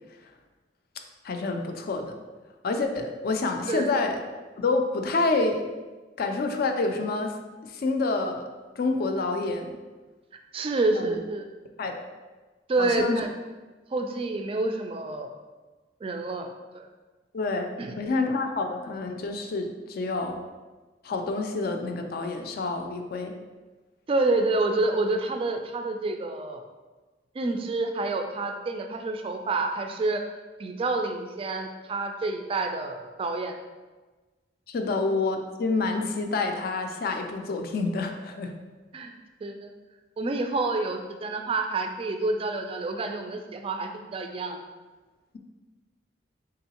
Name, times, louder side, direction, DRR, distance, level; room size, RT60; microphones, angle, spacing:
voice 1, 1.2-2.1 2.6-4.2 4.6-5.6 6.2-7.3 7.6-8.4 8.8-9.8 10.9-11.2 11.8-12.1 12.8-13.2 17.3-17.7 18.0-20.4 21.0-23.3 34.7-38.5, left 3 dB, 55° left, 5 dB, 0.4 m, -28 dB
voice 2, 10.5-11.5 12.7-13.3 13.9-15.3 16.0-16.5 16.7-16.9 17.8-17.9 24.1-26.6 27.3-30.2 30.6-33.5 38.9-39.1 39.4-39.7 40.2-44.6, right 2 dB, 30° right, 5 dB, 0.3 m, -28 dB
3.8 x 3.4 x 2.9 m, 1.3 s
head